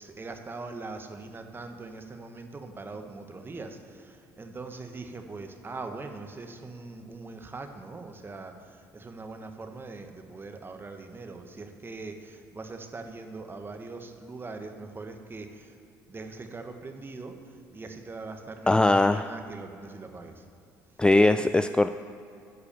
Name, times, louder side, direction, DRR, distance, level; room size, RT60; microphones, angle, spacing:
voice 1, 0.0-15.8 16.1-20.4, right 3 dB, 30° right, 5 dB, 1.2 m, -41 dB
voice 2, 18.7-19.3 21.0-21.9, left 2 dB, 10° left, 10 dB, 0.3 m, -20 dB
12.0 x 4.8 x 6.9 m, 2.5 s
hypercardioid pair, 65°, 8 cm